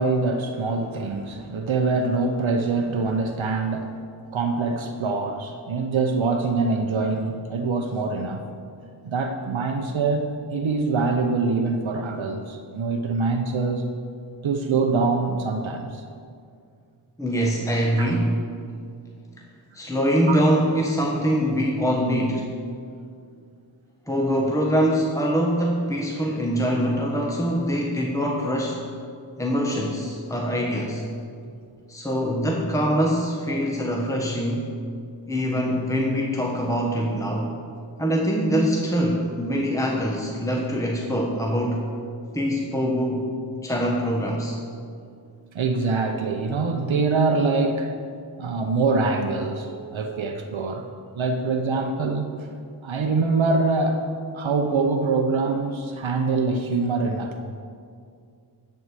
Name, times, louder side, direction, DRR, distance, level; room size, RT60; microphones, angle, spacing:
voice 1, 0.0-3.9 4.3-8.4 9.0-13.9 14.4-16.0 18.0-18.2 20.3-20.4 45.5-47.9 48.4-50.9 51.2-52.5 52.8-54.0 54.3-57.3, right 4 dB, 80° right, 4 dB, 0.8 m, -24 dB
voice 2, 17.2-18.3 19.7-22.5 24.1-28.8 29.4-31.0 31.9-34.7 35.3-37.5 38.0-41.8 42.3-43.3 43.6-44.6, equal, 5° left, -2 dB, 1.2 m, -23 dB
12.5 x 4.8 x 8.0 m, 2.3 s
wide cardioid pair, 60°, 46 cm